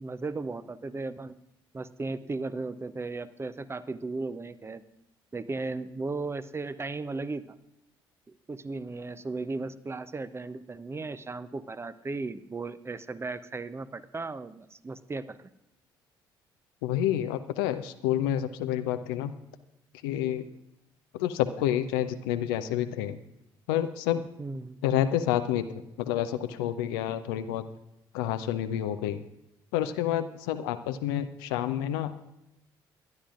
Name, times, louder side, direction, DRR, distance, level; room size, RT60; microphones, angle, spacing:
voice 1, 0.0-1.4 1.7-4.8 5.3-7.5 8.5-15.5 24.4-24.8, right 3 dB, 20° right, 14 dB, 0.7 m, -36 dB
voice 2, 16.8-19.4 20.0-20.5 21.1-23.2 23.7-24.3 24.8-25.6 26.0-27.6 28.1-29.2 29.7-32.2, left 11 dB, 70° left, 9 dB, 0.6 m, -29 dB
23.5 x 11.5 x 2.5 m, 0.85 s
figure-of-eight pair, 45°, 12 cm